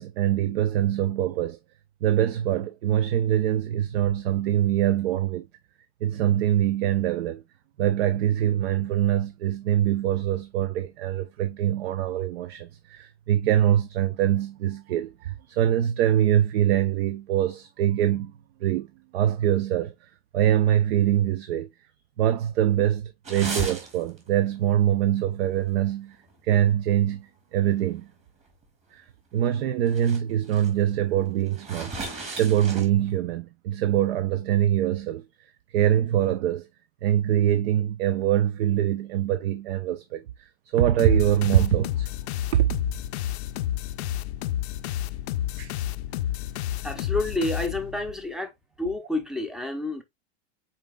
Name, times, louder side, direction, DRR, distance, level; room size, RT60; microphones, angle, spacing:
voice 1, 0.0-1.6 2.0-5.5 6.0-7.4 7.8-18.3 18.6-18.9 19.1-21.7 22.2-26.2 26.4-28.1 28.9-29.1 29.3-31.9 32.3-36.7 37.0-42.1 42.5-42.7 45.6-45.7, right 11 dB, 60° right, 0.6 m, -24 dB
sound 1, 23.2-24.3 24.6-24.8 25.6-25.7 26.1-26.2 26.9-27.0 28.6-28.7 29.4-29.5 29.9-30.2 30.4-30.7 31.5-33.1, right 2 dB, 20° right, 1.8 m, -35 dB
sound 2, 41.0-48.1, left 12 dB, 70° left, 0.5 m, -30 dB
voice 2, 46.8-48.5 48.8-50.0, left 2 dB, ahead, 0.6 m, -29 dB
5.6 x 4.1 x 2.2 m
hypercardioid pair, 135°, 34 cm